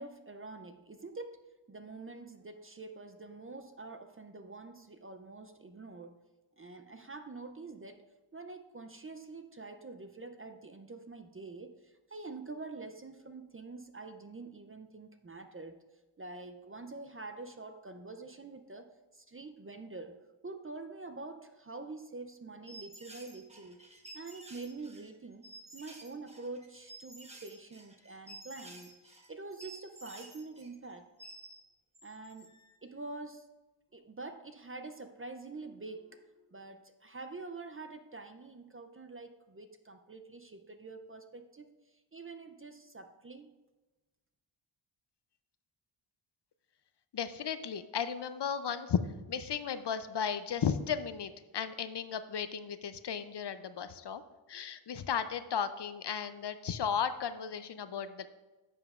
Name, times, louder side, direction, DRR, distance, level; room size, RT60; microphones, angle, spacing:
voice 1, 0.0-6.2 6.6-8.0 8.3-15.8 16.2-20.2 20.4-31.1 32.0-32.5 32.8-33.5 33.9-43.5, right 3 dB, 30° right, 8 dB, 0.4 m, -46 dB
sound 1, 22.7-31.6 31.9-32.8, right 2 dB, 15° right, 0.9 m, -52 dB
voice 2, 47.1-49.0 49.3-54.2 54.5-58.3, left 7 dB, 55° left, 12 dB, 0.5 m, -35 dB
10.5 x 7.1 x 2.4 m, 1.1 s
wide cardioid pair, 110°, 49 cm